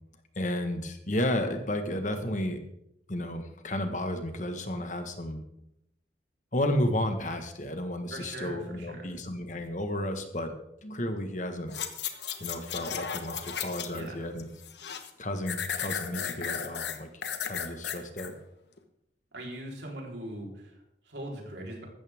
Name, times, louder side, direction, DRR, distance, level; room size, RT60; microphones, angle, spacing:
voice 1, 0.3-2.6 3.1-5.4 6.5-10.6 10.8-11.7 12.4-14.5 15.2-17.1 17.4-18.3, left 1 dB, 45° left, 7 dB, 1.5 m, -32 dB
voice 2, 8.1-9.2 13.9-14.2 19.3-21.8, right 1 dB, 80° right, -1 dB, 4.0 m, -41 dB
sound 1, 11.7-14.1 14.4-15.1 15.5-18.3 18.8-18.9, left 8 dB, 75° left, 1.3 m, -35 dB
15.0 x 13.5 x 3.6 m, 0.80 s
head